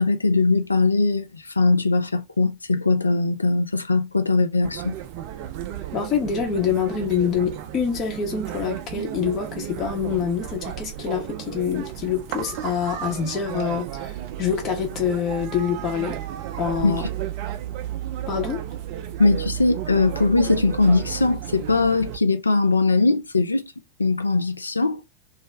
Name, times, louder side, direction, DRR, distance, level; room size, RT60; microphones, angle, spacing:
voice 1, 0.0-4.9 16.8-17.0 19.2-23.7 24.0-25.0, left 3 dB, 80° left, 0.3 m, -20 dB
sound 1, 4.6-22.2, right 11 dB, 45° right, 0.3 m, -33 dB
voice 2, 5.9-16.2 16.6-17.0 18.3-18.6, left 7 dB, 30° left, 0.7 m, -26 dB
2.3 x 2.0 x 3.2 m
figure-of-eight pair, 90°, 0 cm